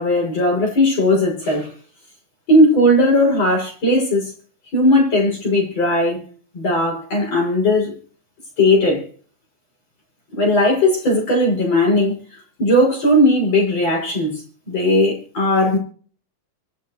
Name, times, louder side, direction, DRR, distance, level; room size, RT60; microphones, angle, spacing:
voice 1, 0.0-1.7 2.5-4.3 4.7-6.2 6.5-7.9 8.6-9.1 10.4-12.1 12.6-15.8, left 1 dB, 45° left, -1 dB, 7.9 m, -17 dB
27.0 x 10.0 x 3.2 m, 0.42 s
omnidirectional pair, 3.9 m